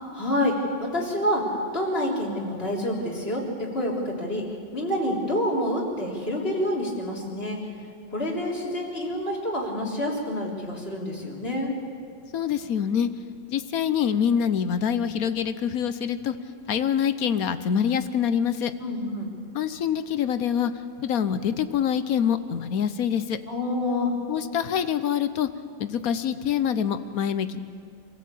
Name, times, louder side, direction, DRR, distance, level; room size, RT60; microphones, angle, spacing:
voice 1, 0.1-0.5 0.8-1.4 1.7-4.4 4.7-7.6 8.1-11.8 18.8-19.3 23.5-24.1, left 1 dB, 30° left, -3 dB, 4.0 m, -27 dB
voice 2, 12.3-13.1 13.5-16.4 16.7-18.7 19.5-20.7 21.0-23.4 24.3-25.5 25.8-27.6, left 8 dB, 60° left, 11 dB, 1.1 m, -25 dB
26.0 x 15.0 x 8.5 m, 2.2 s
omnidirectional pair, 2.0 m